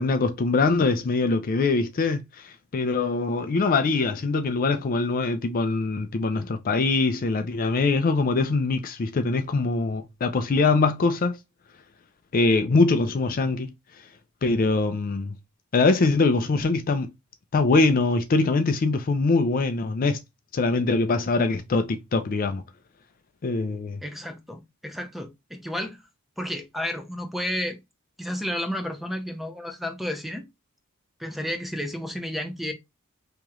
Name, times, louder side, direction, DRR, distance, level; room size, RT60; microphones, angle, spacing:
voice 1, 0.0-11.4 12.3-13.7 14.4-15.4 15.7-17.1 17.5-20.2 20.5-22.6 23.4-24.0, left 3 dB, 40° left, 0.4 m, -23 dB
voice 2, 24.0-26.0 26.4-27.8 28.2-30.4 31.2-32.7, equal, ahead, 0.6 m, -32 dB
3.0 x 2.9 x 3.6 m
head